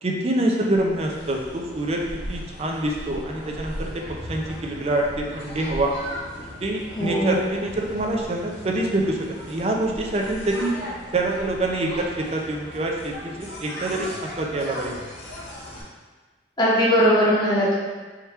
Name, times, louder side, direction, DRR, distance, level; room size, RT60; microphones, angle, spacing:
voice 1, 0.0-2.0 2.3-4.0 4.3-5.9 6.6-10.7 11.1-15.0, right 1 dB, 35° right, 0 dB, 0.5 m, -26 dB
sound 1, 0.8-15.8, equal, 85° left, 1.4 m, -38 dB
voice 2, 7.0-7.5 16.6-17.7, equal, 25° left, -8 dB, 1.0 m, -19 dB
3.6 x 2.9 x 4.4 m, 1.3 s
head